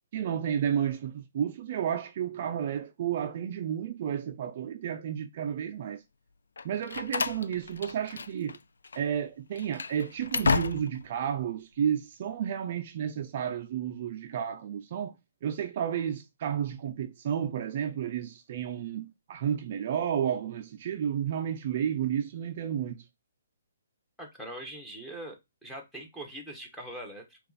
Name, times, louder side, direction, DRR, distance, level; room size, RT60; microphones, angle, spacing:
voice 1, 0.1-6.0 6.6-8.6 8.9-15.1 15.4-23.0, right 9 dB, 40° right, 0.4 m, -32 dB
Slam, 6.6-8.6 8.8-9.0 9.5-11.1, left 4 dB, 85° left, 0.4 m, -31 dB
voice 2, 24.2-25.4 25.6-27.4, right 1 dB, 5° left, 1.0 m, -42 dB
5.3 x 2.4 x 4.0 m
hypercardioid pair, 160°, 0 cm